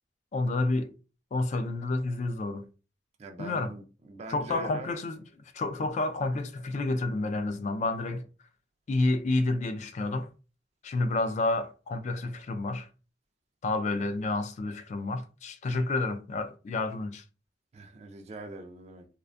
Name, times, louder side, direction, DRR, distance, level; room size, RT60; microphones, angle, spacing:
voice 1, 0.3-0.9 1.3-2.7 3.4-3.7 4.3-5.2 5.5-8.3 8.9-10.3 10.8-12.9 13.6-17.2, left 2 dB, 40° left, 0.3 m, -29 dB
voice 2, 3.2-4.9 17.7-19.1, right 3 dB, 35° right, 0.3 m, -43 dB
2.5 x 2.2 x 2.4 m
head